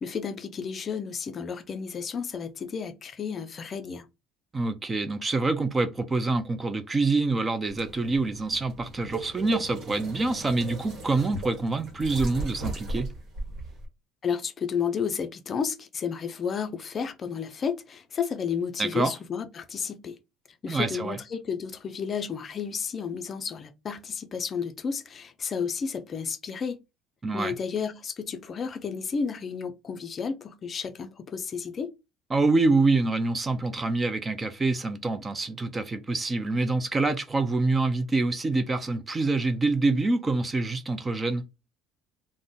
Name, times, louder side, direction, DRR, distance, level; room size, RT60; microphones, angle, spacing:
voice 1, 0.0-4.1 14.2-20.2 20.6-26.8 27.3-31.9, left 6 dB, 35° left, 0.4 m, -32 dB
voice 2, 4.5-13.1 18.8-19.1 20.7-21.2 27.2-27.5 32.3-41.4, right 3 dB, 20° right, 0.4 m, -26 dB
sound 1, 7.7-13.9, right 2 dB, 55° right, 1.1 m, -37 dB
2.4 x 2.0 x 3.6 m
supercardioid pair, 105°, 0 cm